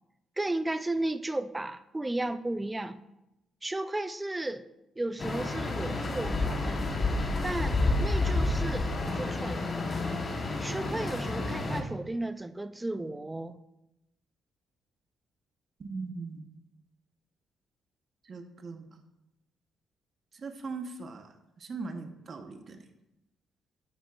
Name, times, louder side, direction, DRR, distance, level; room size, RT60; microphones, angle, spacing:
voice 1, 0.4-3.0 3.6-4.7 5.0-6.8 7.4-9.6 10.6-13.6, right 2 dB, 15° right, 12 dB, 0.5 m, -34 dB
sound 1, 5.2-11.8, left 2 dB, 35° left, 1.2 m, -30 dB
voice 2, 15.8-16.5 18.3-19.0 20.3-21.3 21.6-22.8, right 4 dB, 45° right, 5 dB, 1.1 m, -40 dB
10.0 x 9.2 x 2.5 m, 0.92 s
cardioid pair, 90°, 0 cm